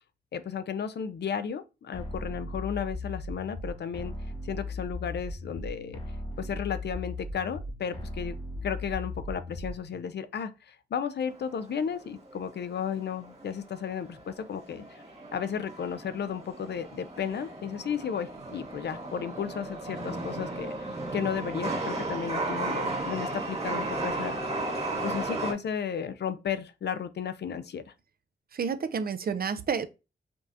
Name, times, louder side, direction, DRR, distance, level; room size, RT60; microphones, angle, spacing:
voice 1, 0.3-4.2 4.4-6.0 6.4-8.4 8.6-15.0 15.3-27.9, left 7 dB, 65° left, 0.5 m, -34 dB
sound 1, 1.9-9.9, left 2 dB, 30° left, 0.9 m, -37 dB
Chatter / Subway metro underground, 11.3-25.5, right 2 dB, 35° right, 1.3 m, -35 dB
voice 2, 28.5-29.9, right 6 dB, 50° right, 0.5 m, -30 dB
5.2 x 2.4 x 2.7 m
cardioid pair, 80°, 19 cm